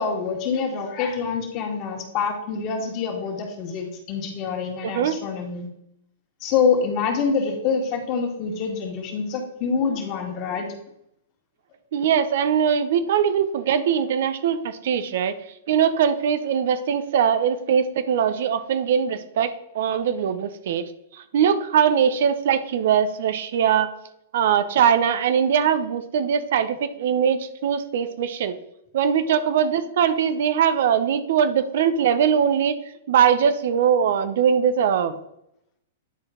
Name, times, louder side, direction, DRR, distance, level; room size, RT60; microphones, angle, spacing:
voice 1, 0.0-5.7 6.4-10.7, left 5 dB, 40° left, 2 dB, 2.0 m, -26 dB
voice 2, 4.8-5.2 11.9-15.4 15.7-23.9 24.3-28.5 28.9-32.8 33.1-35.2, right 8 dB, 65° right, 12 dB, 0.7 m, -21 dB
10.0 x 4.5 x 3.7 m, 0.79 s
hypercardioid pair, 120°, 0 cm